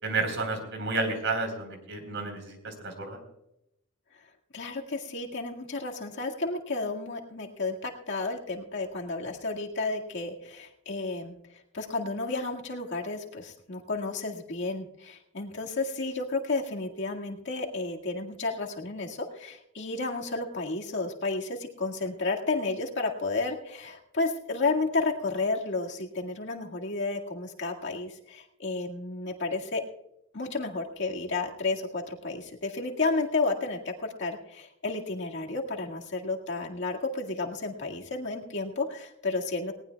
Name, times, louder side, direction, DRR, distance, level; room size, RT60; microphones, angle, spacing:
voice 1, 0.0-3.2, right 3 dB, 65° right, 5 dB, 3.9 m, -31 dB
voice 2, 4.5-11.4 11.7-29.8 30.3-39.7, left 3 dB, 60° left, 1 dB, 2.0 m, -32 dB
19.5 x 18.5 x 2.3 m, 0.81 s
head